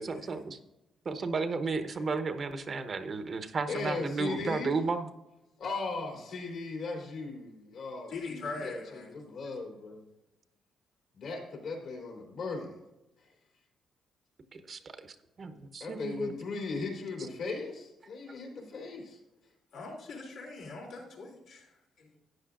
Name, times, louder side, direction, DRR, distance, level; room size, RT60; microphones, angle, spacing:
voice 1, 0.0-0.6 1.1-5.1 14.5-14.8 15.4-16.3, right 4 dB, 45° right, 9 dB, 0.9 m, -33 dB
voice 2, 3.7-4.8 5.6-10.0 11.1-12.8 15.8-19.2, left 3 dB, 70° left, 0 dB, 3.3 m, -38 dB
voice 3, 8.1-9.1 19.7-22.2, left 3 dB, 85° left, -3 dB, 3.1 m, -42 dB
13.0 x 9.3 x 2.5 m, 0.95 s
cardioid pair, 90°, 0 cm